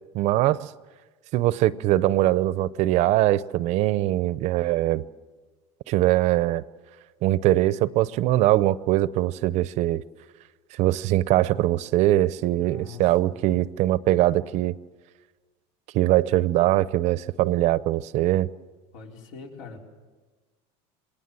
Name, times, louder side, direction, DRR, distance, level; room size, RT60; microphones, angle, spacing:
voice 1, 0.1-0.7 1.3-5.0 5.9-6.6 7.2-10.0 10.7-14.7 15.9-18.5, right 15 dB, 45° right, 18 dB, 0.6 m, -22 dB
voice 2, 12.5-13.7 18.9-19.8, left 4 dB, 85° left, 1 dB, 4.6 m, -43 dB
27.5 x 20.5 x 7.6 m, 1.4 s
cardioid pair, 155°, 16 cm